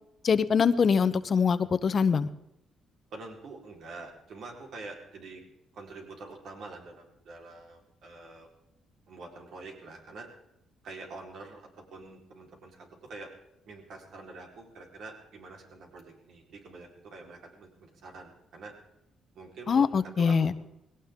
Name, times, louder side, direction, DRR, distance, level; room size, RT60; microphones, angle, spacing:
voice 1, 0.2-2.3 19.7-20.5, left 6 dB, 45° left, 13 dB, 0.9 m, -23 dB
voice 2, 3.1-5.4 5.7-8.5 9.1-10.3 10.8-13.3 13.6-18.7 19.3-20.5, right 3 dB, 70° right, 1 dB, 4.3 m, -46 dB
19.5 x 17.5 x 3.8 m, 0.84 s
cardioid pair, 90°, 0 cm